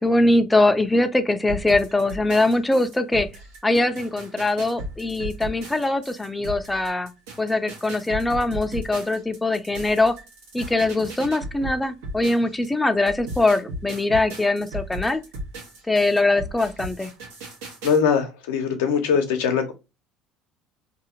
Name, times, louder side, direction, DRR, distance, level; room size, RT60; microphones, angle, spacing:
voice 1, 0.0-3.3 3.6-7.1 7.4-10.1 10.5-15.2 15.9-17.1, left 2 dB, 10° left, 0.5 m, -22 dB
sound 1, 1.5-12.7 13.1-18.0, right 1 dB, 85° right, 1.1 m, -36 dB
voice 2, 17.8-19.7, left 6 dB, 85° left, 0.7 m, -21 dB
2.7 x 2.4 x 2.7 m
supercardioid pair, 90°, 0 cm